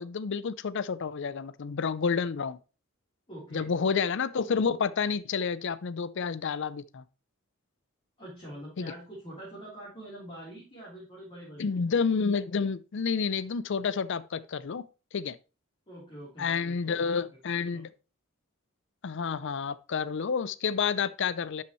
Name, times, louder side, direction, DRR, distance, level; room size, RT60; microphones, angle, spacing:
voice 1, 0.0-2.6 3.5-7.0 8.8-8.9 11.6-14.8 15.1-15.4 16.4-17.9 19.0-21.6, left 5 dB, 60° left, 0.5 m, -29 dB
voice 2, 3.3-3.7 8.2-11.7 15.9-16.7 17.5-17.8, right 1 dB, 25° left, 3.7 m, -45 dB
11.5 x 5.6 x 3.1 m
head